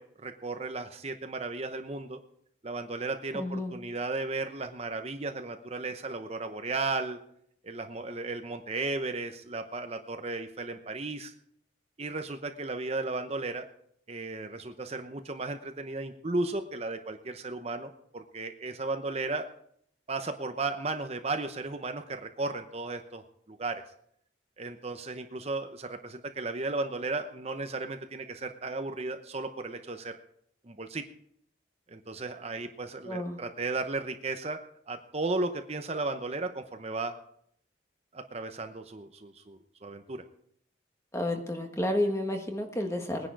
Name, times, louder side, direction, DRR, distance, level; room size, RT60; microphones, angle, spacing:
voice 1, 0.0-2.2 2.6-7.2 7.6-11.3 12.0-13.6 14.1-19.5 20.1-23.8 24.6-30.1 30.6-31.0 31.9-34.6 34.9-37.1 38.1-40.2, right 3 dB, 35° right, 7 dB, 0.8 m, -35 dB
voice 2, 3.3-3.7 33.0-33.4 41.1-43.3, left 1 dB, 15° left, 4 dB, 1.6 m, -31 dB
20.0 x 10.0 x 4.8 m, 0.69 s
head